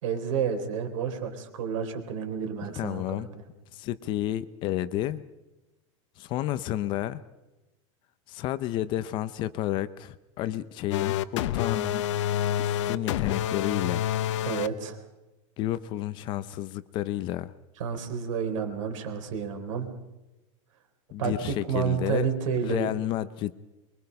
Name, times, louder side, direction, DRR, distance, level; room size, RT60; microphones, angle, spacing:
voice 1, 0.0-3.4 14.5-15.0 17.8-19.9 21.2-22.9, right 7 dB, 75° right, 6 dB, 4.1 m, -30 dB
voice 2, 2.6-3.3 3.7-5.2 6.2-7.2 8.3-12.1 12.6-14.1 15.6-17.5 21.1-22.3 22.6-23.6, left 13 dB, 30° left, 15 dB, 0.6 m, -31 dB
sound 1, 10.9-14.7, left 11 dB, 65° left, 1.0 m, -28 dB
24.0 x 23.0 x 5.4 m, 1.0 s
supercardioid pair, 175°, 17 cm